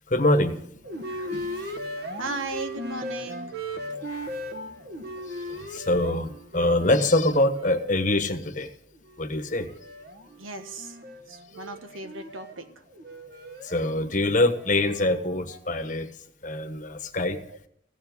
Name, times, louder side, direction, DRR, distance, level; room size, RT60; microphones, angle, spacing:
voice 1, 0.1-0.6 0.9-1.8 4.1-4.3 5.3-8.7 9.2-9.7 13.6-16.1 16.4-17.4, left 1 dB, 40° left, 7 dB, 1.2 m, -25 dB
sound 1, 0.8-8.5 9.0-15.6, equal, 50° right, 1.5 m, -38 dB
voice 2, 2.2-3.6 10.4-11.0 11.3-12.7 17.5-17.6, right 2 dB, 90° right, 7 dB, 1.5 m, -36 dB
16.0 x 7.3 x 9.5 m, 0.70 s
head